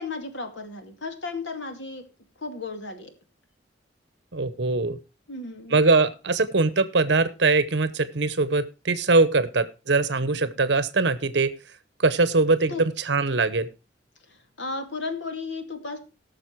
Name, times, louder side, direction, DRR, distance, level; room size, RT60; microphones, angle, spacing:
voice 1, 0.0-2.0 2.4-3.1 5.3-5.8 12.7-12.8 14.3-16.0, left 3 dB, 80° left, 6 dB, 2.5 m, -34 dB
voice 2, 4.3-5.0 5.7-11.5 12.0-13.7, right 3 dB, 65° right, 14 dB, 0.9 m, -22 dB
17.5 x 6.6 x 4.6 m, 0.31 s
head